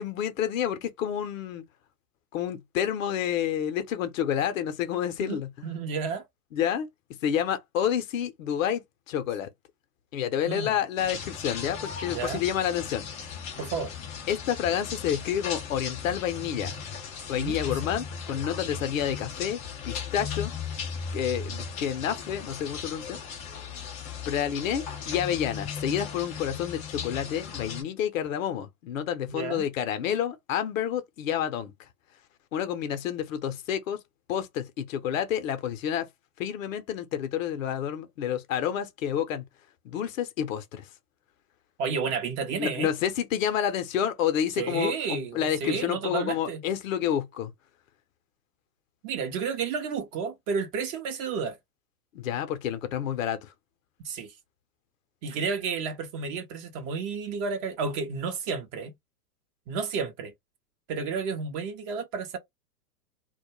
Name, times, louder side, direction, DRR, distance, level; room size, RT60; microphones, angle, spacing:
voice 1, 0.0-1.6 2.3-5.7 6.5-6.9 7.2-9.5 10.1-13.1 14.3-16.8 17.3-19.6 19.8-20.5 21.1-23.2 24.3-31.7 32.5-34.0 34.3-36.1 36.4-39.4 39.8-40.8 42.6-47.5 52.1-53.5, left 9 dB, 55° left, 0.7 m, -29 dB
voice 2, 5.2-6.2 10.4-10.7 12.1-12.4 13.6-13.9 17.3-17.6 29.3-29.7 41.8-42.9 44.6-46.6 49.0-51.6 54.0-54.3 55.2-58.9 59.7-60.3 60.9-62.4, right 5 dB, 30° right, 0.6 m, -31 dB
sound 1, 11.0-27.8, left 6 dB, 15° left, 0.3 m, -37 dB
2.2 x 2.1 x 3.0 m
hypercardioid pair, 105°, 48 cm